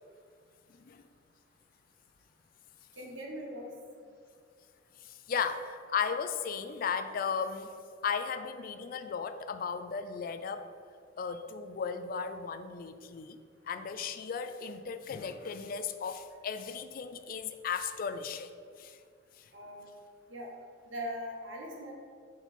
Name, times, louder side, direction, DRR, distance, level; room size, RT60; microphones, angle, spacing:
voice 1, 0.7-1.0 5.0-7.7 8.0-10.7 11.2-13.4 13.6-18.5 18.8-19.0 19.4-19.5, left 6 dB, 50° left, 9 dB, 0.3 m, -36 dB
voice 2, 3.0-3.7 19.5-19.9 20.3-20.5 20.9-21.9, equal, 85° right, 0 dB, 1.1 m, -40 dB
4.6 x 4.3 x 5.3 m, 2.2 s
head